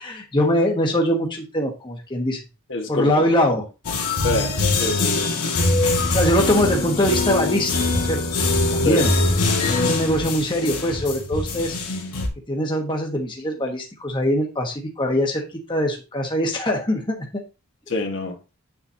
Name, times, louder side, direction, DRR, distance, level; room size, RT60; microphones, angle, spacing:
voice 1, 0.0-2.4 2.9-3.6 6.1-8.2 8.7-9.1 9.7-11.7 12.5-15.4 15.7-17.4, equal, 20° left, 1.2 m, -22 dB
voice 2, 2.7-3.3 4.2-5.3 8.8-9.1 17.9-18.4, left 2 dB, 55° left, 1.5 m, -26 dB
sound 1, 3.8-12.3, left 2 dB, 90° left, 2.0 m, -22 dB
8.9 x 7.0 x 2.8 m
head